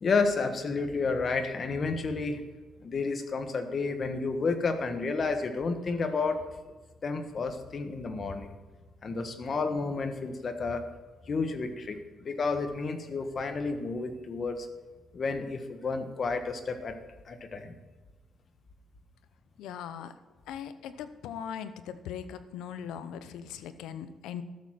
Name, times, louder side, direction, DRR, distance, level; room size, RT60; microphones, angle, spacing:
voice 1, 0.0-2.4 2.8-6.4 7.0-8.5 9.0-10.8 11.3-14.7 15.1-17.0 17.2-17.7, left 4 dB, 45° left, 8 dB, 1.5 m, -31 dB
voice 2, 19.6-20.1 20.5-24.4, left 8 dB, 90° left, 12 dB, 0.8 m, -40 dB
13.0 x 7.4 x 6.0 m, 1.4 s
cardioid pair, 90°, 0 cm